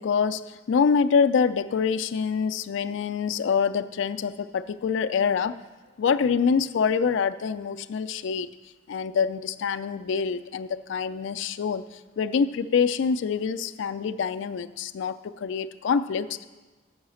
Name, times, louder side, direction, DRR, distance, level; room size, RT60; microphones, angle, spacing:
voice 1, 0.0-5.5 6.0-8.5 8.9-11.8 12.2-16.4, left 6 dB, 65° left, 11 dB, 0.3 m, -25 dB
7.9 x 5.6 x 6.3 m, 1.3 s
head